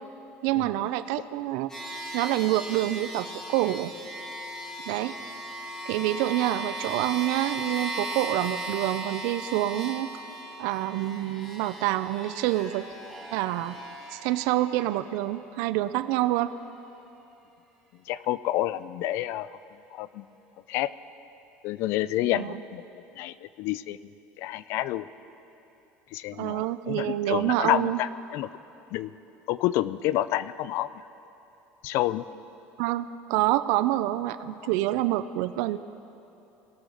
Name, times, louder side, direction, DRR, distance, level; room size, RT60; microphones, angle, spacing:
voice 1, 0.4-1.7 2.1-3.9 4.9-5.2 5.8-10.1 10.6-12.9 13.3-13.7 14.1-16.5 22.3-22.6 26.3-28.0 32.8-35.8, right 15 dB, 75° right, 14 dB, 0.4 m, -27 dB
sound 1, 1.7-15.3, right 1 dB, 10° left, 1.8 m, -37 dB
voice 2, 18.1-19.6 19.9-20.3 20.7-20.9 21.6-22.8 23.2-25.1 26.1-28.5 28.9-29.1 29.5-30.9 31.8-32.2, left 14 dB, 60° left, 16 dB, 0.3 m, -29 dB
19.0 x 6.5 x 3.9 m, 2.9 s
cardioid pair, 145°, 5 cm